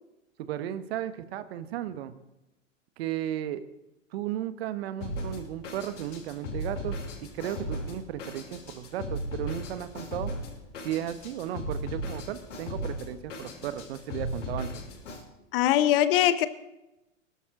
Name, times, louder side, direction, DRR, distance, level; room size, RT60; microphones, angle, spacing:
voice 1, 0.4-2.1 3.0-3.6 4.1-6.9 7.2-10.3 10.8-14.9, right 11 dB, 50° right, 12 dB, 1.2 m, -35 dB
Drum kit, 5.0-15.2, left 1 dB, 70° left, 6.0 m, -37 dB
voice 2, 15.5-16.5, left 12 dB, 45° left, 14 dB, 1.0 m, -22 dB
21.5 x 12.5 x 3.8 m, 0.94 s
figure-of-eight pair, 105°, 39 cm